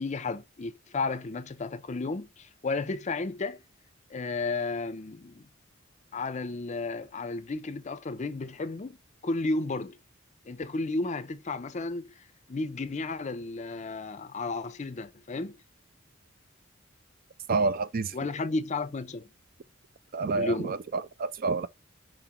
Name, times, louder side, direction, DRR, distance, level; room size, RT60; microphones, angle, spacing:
voice 1, 0.0-3.6 4.1-5.5 6.1-9.0 9.2-10.0 10.5-12.1 12.5-15.6 18.1-19.3 20.4-20.8, left 3 dB, 35° left, 0.5 m, -33 dB
voice 2, 17.5-18.2 20.1-21.7, right 4 dB, 45° right, 0.4 m, -28 dB
4.9 x 2.9 x 3.6 m
head